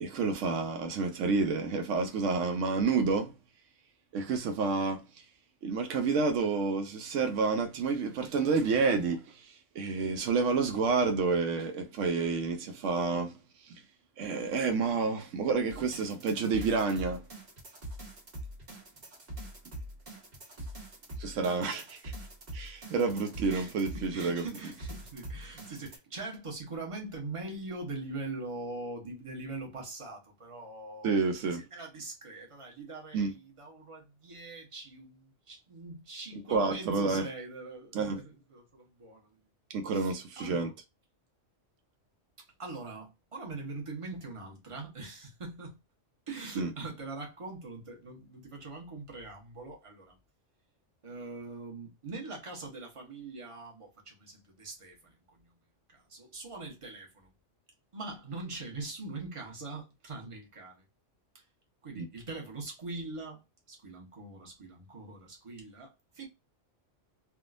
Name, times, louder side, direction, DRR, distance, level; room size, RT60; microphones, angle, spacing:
voice 1, 0.0-3.3 4.1-5.0 5.6-13.4 13.7-13.8 14.2-17.2 21.2-22.1 22.5-24.5 31.0-31.6 33.1-33.3 36.5-37.2 37.9-38.2 39.7-40.7 46.6-46.7 62.0-62.1, right 4 dB, 80° right, 0.9 m, -29 dB
sound 1, 15.7-26.0, right 1 dB, 50° right, 1.5 m, -44 dB
voice 2, 23.4-31.1 31.5-39.4 39.9-40.7 42.6-45.8 46.3-50.1 51.0-55.5 55.9-57.3 57.9-60.8 61.8-63.4 63.7-66.3, right 3 dB, 30° right, 1.1 m, -42 dB
3.5 x 2.4 x 2.4 m
omnidirectional pair, 1.3 m